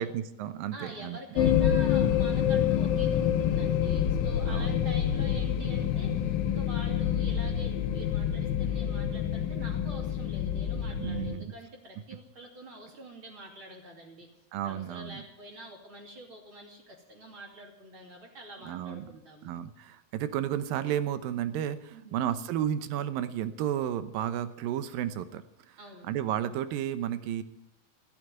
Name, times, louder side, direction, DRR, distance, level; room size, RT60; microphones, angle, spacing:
voice 1, 0.0-1.2 4.5-4.8 11.0-11.5 14.5-15.2 18.6-19.1 19.4-25.8 26.0-27.4, right 10 dB, 80° right, 12 dB, 2.6 m, -32 dB
voice 2, 0.7-14.3 14.6-19.5 21.9-22.2 25.8-26.1, right 2 dB, 40° right, 1 dB, 3.2 m, -46 dB
sound 1, 1.4-11.4, left 9 dB, 75° left, 2.5 m, -27 dB
15.5 x 9.0 x 9.4 m, 0.81 s
omnidirectional pair, 4.1 m